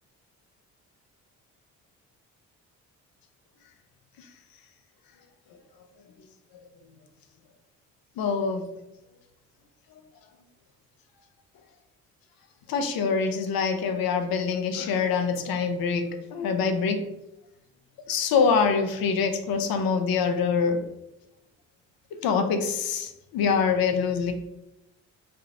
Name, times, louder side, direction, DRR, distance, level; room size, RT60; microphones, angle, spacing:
voice 1, 8.2-8.6 12.7-17.1 18.1-20.8 22.2-24.3, left 5 dB, 65° left, 6 dB, 0.6 m, -25 dB
3.4 x 2.2 x 3.7 m, 0.91 s
hypercardioid pair, 50°, 38 cm